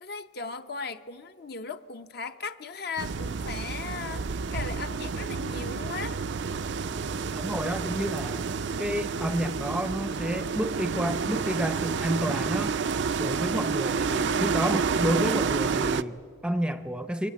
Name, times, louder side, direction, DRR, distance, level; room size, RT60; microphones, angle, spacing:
voice 1, 0.0-6.2, left 4 dB, 50° left, 9 dB, 0.8 m, -37 dB
sound 1, 3.0-16.0, right 5 dB, 60° right, 0.5 m, -29 dB
voice 2, 7.3-8.5 8.8-12.7 13.2-17.3, equal, 5° right, 10 dB, 0.6 m, -30 dB
23.0 x 18.5 x 8.4 m, 2.1 s
head